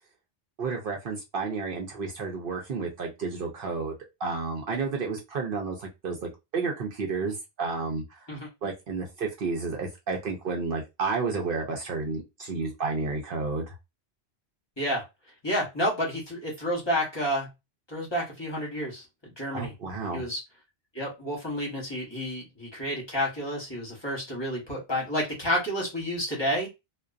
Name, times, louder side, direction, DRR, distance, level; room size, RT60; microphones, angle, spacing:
voice 1, 0.6-8.3 8.6-13.7 19.5-20.2, right 4 dB, 60° right, 0 dB, 0.7 m, -31 dB
voice 2, 15.4-17.5 17.9-19.0 19.4-19.7 20.1-20.4 20.9-26.7, equal, 25° left, -4 dB, 1.0 m, -30 dB
2.4 x 2.2 x 2.3 m, 0.23 s
omnidirectional pair, 1.1 m